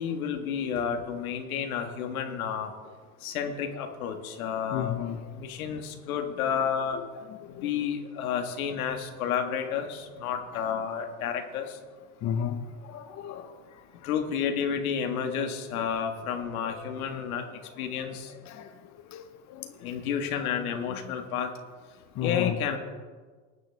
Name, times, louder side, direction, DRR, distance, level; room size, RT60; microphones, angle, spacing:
voice 1, 0.0-2.7 3.2-5.0 5.3-7.0 7.5-11.8 14.0-17.5 17.8-18.3 19.8-21.5 22.2-22.8, left 7 dB, 85° left, 1.8 m, -31 dB
voice 2, 4.7-5.3 6.9-7.1 7.4-7.7 10.5-10.7 12.2-13.5 16.5-16.9 18.3-18.7 19.1-19.9 20.9-21.1 22.1-22.6, left 9 dB, 40° left, 1.1 m, -34 dB
19.0 x 9.2 x 3.5 m
supercardioid pair, 100°, 42 cm